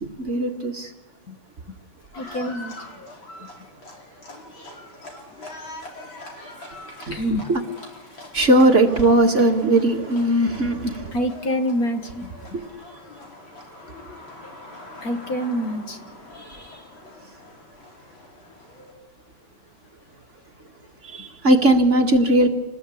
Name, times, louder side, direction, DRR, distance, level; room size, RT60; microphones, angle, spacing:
voice 1, 0.0-0.9 7.0-7.6 8.3-11.1 12.5-12.6 16.4-16.8 21.0-22.5, right 1 dB, 40° right, 2.2 m, -19 dB
Livestock farm animals working animals, 2.1-18.9, left 2 dB, 85° left, 5.5 m, -43 dB
voice 2, 2.2-2.8 7.1-7.4 11.1-12.3 15.0-16.0, equal, 50° left, 2.0 m, -26 dB
27.5 x 20.0 x 8.6 m
omnidirectional pair, 2.1 m